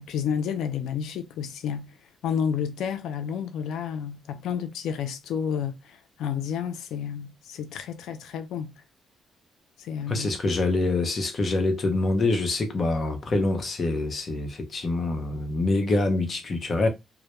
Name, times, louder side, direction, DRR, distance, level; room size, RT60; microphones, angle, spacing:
voice 1, 0.0-2.0 2.2-8.8 9.8-10.3, left 7 dB, 80° left, 0.4 m, -30 dB
voice 2, 10.1-16.9, left 2 dB, 40° left, 0.7 m, -25 dB
2.1 x 2.1 x 2.9 m
cardioid pair, 90°, 0 cm